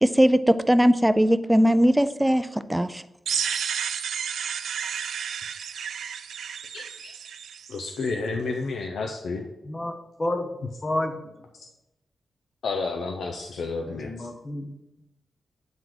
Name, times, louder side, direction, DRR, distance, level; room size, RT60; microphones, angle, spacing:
voice 1, 0.0-3.0, equal, 5° right, 13 dB, 0.3 m, -20 dB
sound 1, 3.3-8.1, right 7 dB, 85° right, 0.4 m, -32 dB
voice 2, 6.7-7.1 7.7-9.5 10.6-10.7 12.6-14.3, left 3 dB, 80° left, 3 dB, 0.6 m, -31 dB
voice 3, 10.2-10.5 10.8-11.2 13.9-14.7, left 1 dB, 25° left, 6 dB, 0.9 m, -29 dB
9.1 x 3.8 x 4.8 m, 0.91 s
wide cardioid pair, 120°, 0 cm